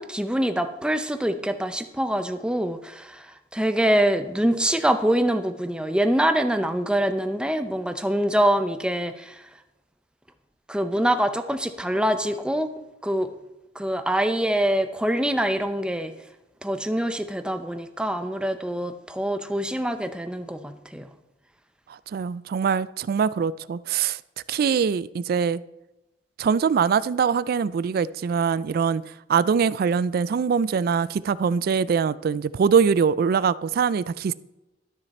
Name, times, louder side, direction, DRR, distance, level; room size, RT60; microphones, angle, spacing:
voice 1, 0.0-3.2 3.5-9.3 10.7-12.7 13.0-13.3 13.8-16.1 16.6-21.1, right 1 dB, 5° right, 0.6 m, -24 dB
voice 2, 22.1-24.2 24.5-25.6 26.4-29.0 29.3-34.3, right 6 dB, 55° right, 0.3 m, -23 dB
12.5 x 6.5 x 4.2 m
head